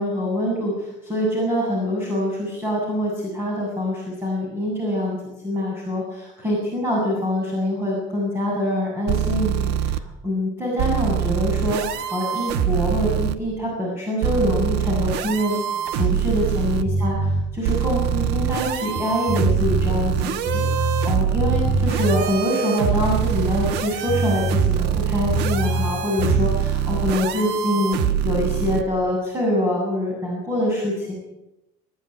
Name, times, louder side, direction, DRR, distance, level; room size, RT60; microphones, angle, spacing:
voice 1, 0.0-5.2 5.4-15.6 15.9-17.2 17.5-31.2, left 1 dB, 15° right, -4 dB, 8.0 m, -25 dB
sound 1, 9.1-10.0 10.8-13.4 14.2-16.8 17.6-28.8, right 10 dB, 70° right, 1.4 m, -24 dB
sound 2, 16.8-17.4 18.0-21.1 21.4-22.2 22.8-25.9 26.2-26.4, right 2 dB, 45° right, 6.8 m, -24 dB
27.0 x 11.5 x 9.2 m, 0.91 s
cardioid pair, 145°, 18 cm